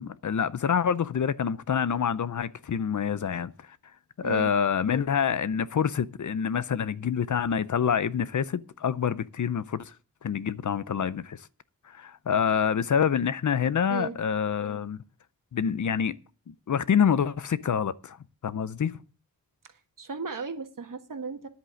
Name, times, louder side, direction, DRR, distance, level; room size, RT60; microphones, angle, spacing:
voice 1, 0.0-3.5 4.2-9.8 10.2-11.4 11.9-15.0 15.5-16.1 16.5-18.2 18.4-19.0, left 7 dB, 55° left, 0.6 m, -27 dB
voice 2, 4.2-4.5 13.9-14.2 19.7-21.5, right 5 dB, 60° right, 1.5 m, -36 dB
10.5 x 8.2 x 6.3 m
wide cardioid pair, 120°, 35 cm